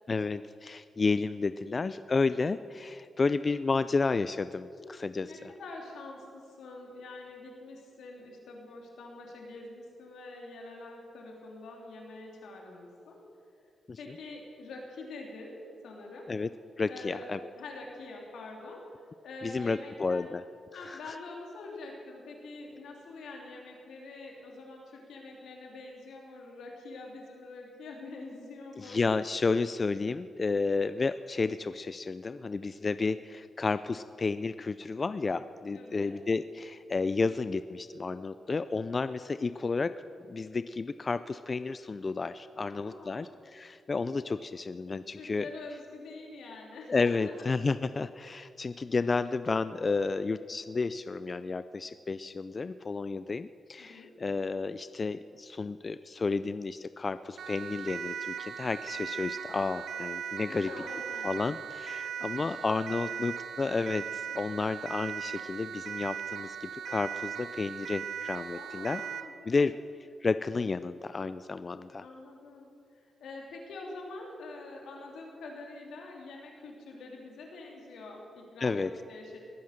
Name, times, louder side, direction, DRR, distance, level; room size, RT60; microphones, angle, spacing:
voice 1, 0.1-5.3 13.9-14.0 16.3-16.5 16.8-17.4 19.4-20.4 20.7-21.2 28.8-39.9 40.3-45.5 46.9-60.7 61.2-69.0 69.4-69.8 70.2-72.0 78.6-78.9, left 4 dB, 35° left, 13 dB, 0.4 m, -31 dB
voice 2, 4.8-13.2 14.0-15.5 15.8-16.3 16.9-17.3 17.6-18.9 19.2-20.3 20.7-29.0 35.7-36.1 42.6-43.3 45.1-47.5 53.8-54.1 60.5-61.3 62.4-63.2 68.5-69.7 72.0-79.4, left 3 dB, 85° left, 0 dB, 3.1 m, -45 dB
Siren, 57.4-69.4, right 8 dB, 80° right, 0.7 m, -39 dB
21.0 x 9.4 x 6.6 m, 2.5 s
cardioid pair, 90°, 0 cm